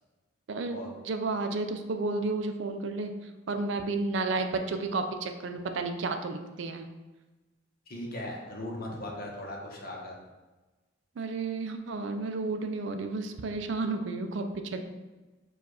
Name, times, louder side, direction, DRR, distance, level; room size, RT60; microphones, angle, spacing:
voice 1, 0.5-0.8 1.0-3.1 3.5-6.9 11.2-14.8, right 3 dB, 65° right, 6 dB, 0.4 m, -32 dB
voice 2, 7.9-10.2, left 1 dB, 50° left, -1 dB, 0.9 m, -38 dB
4.7 x 2.4 x 4.7 m, 1.2 s
head